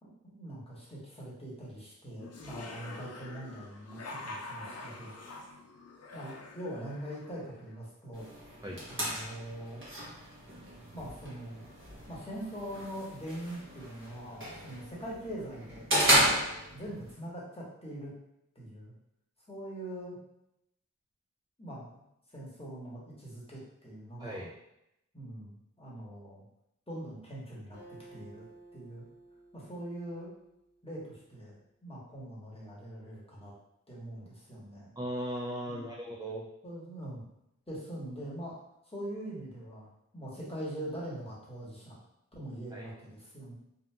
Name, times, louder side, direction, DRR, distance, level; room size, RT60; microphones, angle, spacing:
voice 1, 0.0-5.1 5.4-5.5 6.1-8.3 8.9-9.8 10.9-11.6 12.1-15.9 16.7-18.1 18.5-18.9 19.5-20.2 21.6-22.0 22.3-24.5 25.1-26.4 26.9-27.8 28.1-28.5 28.7-29.0 29.5-30.3 30.8-33.5 33.9-34.9 35.6-36.0 36.6-37.2 37.7-38.6 38.9-39.9 40.1-42.0 42.3-43.5, right 1 dB, 20° left, -6 dB, 1.1 m, -42 dB
sound 1, 2.2-7.7, left 2 dB, 50° left, 0.5 m, -46 dB
sound 2, 8.1-17.1, equal, 40° right, 1.1 m, -33 dB
Acoustic guitar, 27.7-31.3, right 2 dB, 75° right, 1.2 m, -55 dB
voice 2, 35.0-36.5 42.7-42.8, right 1 dB, 15° right, -4 dB, 0.4 m, -37 dB
2.7 x 2.5 x 2.2 m, 0.82 s
wide cardioid pair, 45°, 32 cm